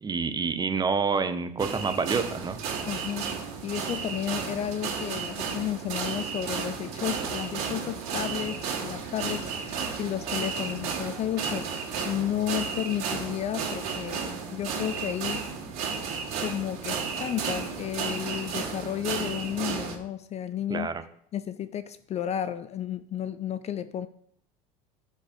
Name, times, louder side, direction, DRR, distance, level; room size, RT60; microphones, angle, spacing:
voice 1, 0.0-2.6 20.7-21.0, right 5 dB, 20° right, 0.5 m, -28 dB
sound 1, 1.6-20.0, right 5 dB, 65° right, 2.1 m, -33 dB
voice 2, 2.9-3.4 3.6-15.5 16.4-20.9 21.3-24.1, left 10 dB, 35° left, 0.3 m, -32 dB
5.2 x 4.0 x 4.9 m
hypercardioid pair, 80°, 19 cm